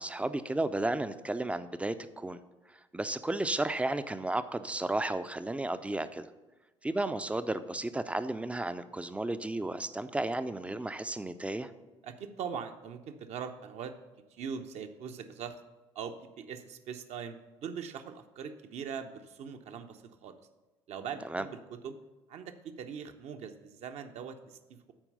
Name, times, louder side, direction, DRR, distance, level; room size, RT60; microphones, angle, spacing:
voice 1, 0.0-2.4 2.7-6.3 6.8-11.7 21.3-21.4, right 2 dB, 10° right, 12 dB, 0.5 m, -33 dB
voice 2, 12.0-13.9 14.3-15.6 15.9-20.4 20.9-22.0 22.3-24.9, right 7 dB, 45° right, 7 dB, 0.7 m, -41 dB
8.9 x 4.5 x 6.7 m, 1.1 s
figure-of-eight pair, 55°, 15 cm